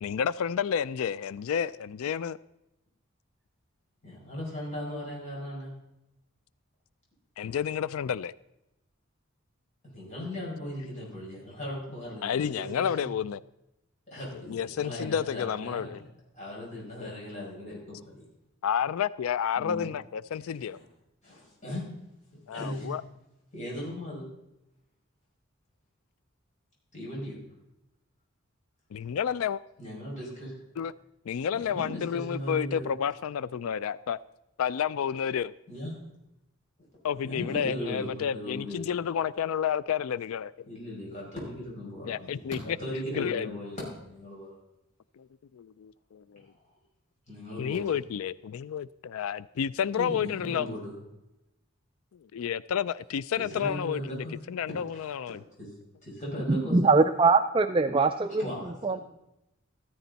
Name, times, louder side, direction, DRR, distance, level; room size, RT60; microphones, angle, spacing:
voice 1, 0.0-2.4 7.4-8.3 12.2-13.4 14.3-16.0 17.0-17.1 18.6-20.8 22.5-23.0 28.9-29.6 30.8-30.9 31.3-34.2 34.6-35.5 37.0-40.7 42.0-42.8 43.1-43.5 45.2-45.3 45.5-46.5 47.6-50.7 52.3-55.4, left 8 dB, 80° left, 19 dB, 0.4 m, -30 dB
voice 2, 4.0-5.7 9.8-13.1 14.1-15.9 16.3-18.3 19.6-19.9 20.7-20.8 21.2-21.8 22.5-22.9 23.5-24.3 26.9-27.4 29.8-30.5 31.5-32.9 35.7-36.0 37.2-38.8 40.7-44.6 47.3-48.0 50.0-50.9 53.4-54.4 54.9-55.0 55.6-55.7 56.0-56.8 58.4-59.0, left 1 dB, 35° left, -4 dB, 6.1 m, -38 dB
voice 3, 56.5-59.0, right 4 dB, 25° right, 9 dB, 0.4 m, -23 dB
14.5 x 14.0 x 4.1 m, 0.89 s
head